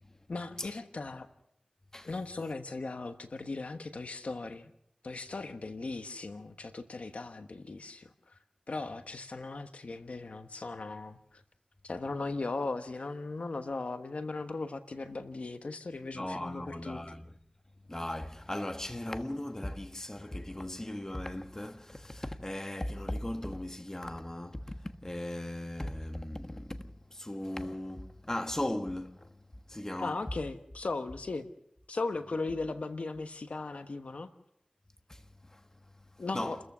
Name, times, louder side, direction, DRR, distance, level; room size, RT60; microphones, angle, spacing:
voice 1, 0.3-1.3 2.0-4.7 5.0-8.4 8.7-11.4 11.8-17.0 30.0-31.5 31.9-34.3 36.2-36.6, left 3 dB, 85° left, 1.2 m, -38 dB
voice 2, 16.1-17.4 17.9-30.2 35.1-36.6, left 1 dB, 25° left, 1.4 m, -38 dB
30.0 x 14.5 x 6.2 m
wide cardioid pair, 55°, 2 cm